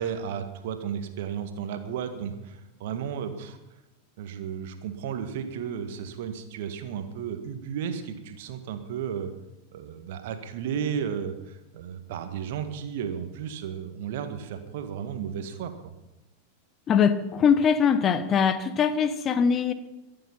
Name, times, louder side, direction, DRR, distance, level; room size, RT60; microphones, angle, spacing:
voice 1, 0.0-3.6 4.2-9.3 9.7-15.9, right 8 dB, 55° right, 8 dB, 1.7 m, -33 dB
voice 2, 16.9-19.7, left 7 dB, 25° left, 12 dB, 1.0 m, -22 dB
22.5 x 7.7 x 5.8 m, 0.98 s
figure-of-eight pair, 90°, 0 cm